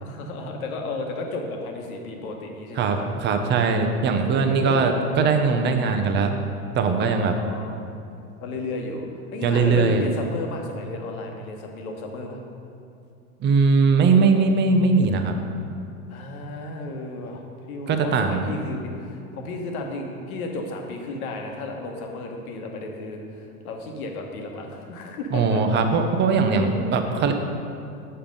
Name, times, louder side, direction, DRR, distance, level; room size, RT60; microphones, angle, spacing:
voice 1, 0.0-3.1 4.1-5.3 7.1-7.8 8.4-12.4 16.1-17.4 17.7-25.6 26.5-26.9, left 2 dB, 65° left, 2 dB, 1.4 m, -33 dB
voice 2, 2.8-6.3 6.8-7.4 9.4-10.0 13.4-15.3 17.9-18.5 25.3-27.3, right 4 dB, 25° right, 5 dB, 0.7 m, -20 dB
7.2 x 5.5 x 5.3 m, 2.6 s
hypercardioid pair, 95°, 45 cm